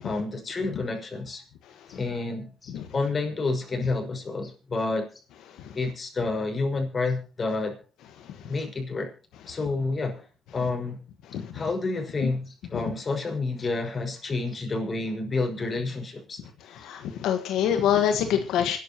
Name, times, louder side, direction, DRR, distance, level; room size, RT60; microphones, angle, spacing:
voice 1, 0.0-1.4 1.9-5.1 5.7-7.8 8.5-9.1 9.5-10.2 10.5-11.0 11.5-16.4, left 3 dB, 35° left, 5.6 m, -29 dB
voice 2, 16.7-18.8, left 9 dB, 90° left, 1.4 m, -25 dB
27.0 x 11.0 x 3.0 m
cardioid pair, 90°, 0 cm